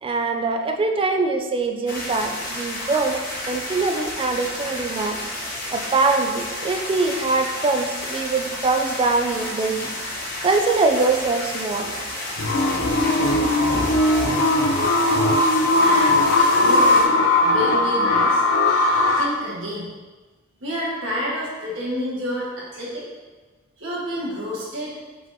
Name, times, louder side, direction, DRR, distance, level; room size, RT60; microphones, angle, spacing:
voice 1, 0.0-3.2 3.5-5.2 5.7-9.9 10.4-11.9 13.9-14.1, right 3 dB, 30° right, 4 dB, 0.3 m, -23 dB
sound 1, 1.9-17.0, left 1 dB, 45° left, 0.9 m, -31 dB
sound 2, 12.4-19.3, left 2 dB, 85° left, 0.5 m, -18 dB
voice 2, 15.8-17.1 17.4-18.4 19.1-19.9 20.6-23.1 23.8-25.0, equal, 75° right, -5 dB, 1.4 m, -29 dB
4.8 x 3.7 x 2.7 m, 1.3 s
head